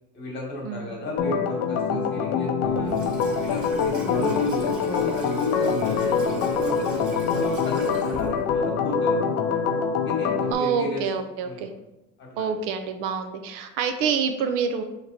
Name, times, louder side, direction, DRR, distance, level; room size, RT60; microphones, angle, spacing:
voice 1, 0.1-3.1 3.4-9.6 10.0-11.0 11.4-11.7 12.2-12.5, left 2 dB, 30° left, -2 dB, 1.3 m, -33 dB
Organ, 1.2-10.5, left 6 dB, 50° left, 0.5 m, -25 dB
Water tap faucet / Sink (filling or washing), 2.6-8.9, right 2 dB, 40° right, 1.1 m, -41 dB
voice 2, 10.5-11.7 12.4-14.8, right 6 dB, 65° right, 7 dB, 0.6 m, -27 dB
4.2 x 3.0 x 3.9 m, 0.93 s
cardioid pair, 150°, 35 cm